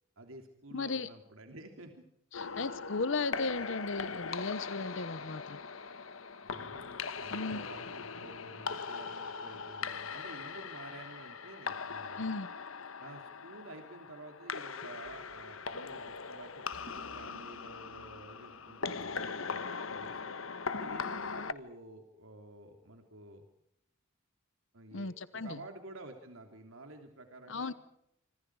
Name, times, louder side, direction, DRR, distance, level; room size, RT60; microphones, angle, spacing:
voice 1, 0.2-2.0 6.4-12.3 13.0-20.3 20.7-23.5 24.7-27.7, right 2 dB, 80° right, 4 dB, 3.1 m, -51 dB
voice 2, 0.7-1.1 2.3-5.6 7.3-7.7 12.2-12.5 24.9-25.6 27.5-27.7, left 3 dB, 65° left, 14 dB, 0.9 m, -36 dB
sound 1, 2.3-21.5, left 5 dB, 80° left, 1.3 m, -40 dB
26.5 x 25.5 x 4.8 m, 0.78 s
head